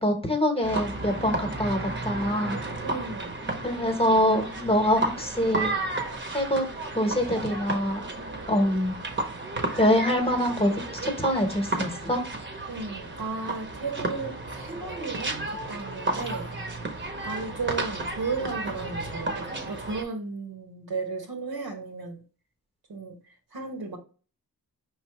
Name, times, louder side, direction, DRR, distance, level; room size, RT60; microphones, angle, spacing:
voice 1, 0.0-2.6 3.6-5.7 6.3-6.6 6.9-8.0 8.5-8.9 9.8-10.7 11.0-12.2, equal, 15° left, 1.0 m, -24 dB
sound 1, 0.6-20.0, right 2 dB, 30° right, 0.9 m, -33 dB
voice 2, 2.8-3.4 12.7-16.5 17.2-22.2 22.9-23.2 23.5-24.0, right 4 dB, 75° right, 1.4 m, -34 dB
5.4 x 3.2 x 2.9 m
wide cardioid pair, 125°, 37 cm